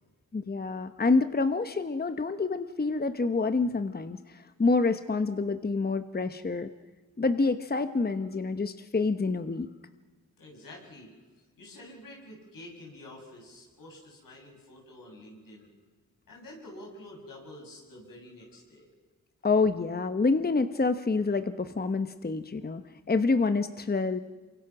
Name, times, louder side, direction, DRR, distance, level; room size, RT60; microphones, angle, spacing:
voice 1, 0.3-6.7 7.2-9.7 19.4-24.2, left 3 dB, 30° left, 10 dB, 1.0 m, -27 dB
voice 2, 10.4-11.1 11.6-15.7 16.3-18.9, left 1 dB, 85° left, -1 dB, 7.8 m, -48 dB
27.5 x 24.0 x 6.2 m, 1.4 s
cardioid pair, 75°, 33 cm